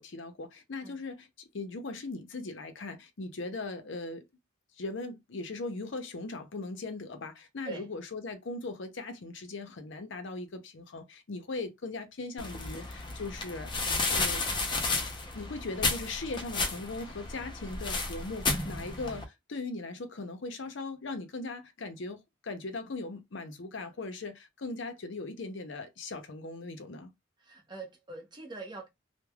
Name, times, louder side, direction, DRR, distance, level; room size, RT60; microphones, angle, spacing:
voice 1, 0.0-4.3 4.8-14.5 15.3-27.1, left 3 dB, 65° left, 0.6 m, -39 dB
sound 1, 12.4-19.2, left 3 dB, 25° left, 0.5 m, -32 dB
voice 2, 27.4-28.9, right 3 dB, 20° right, 0.7 m, -43 dB
3.2 x 2.2 x 2.2 m
head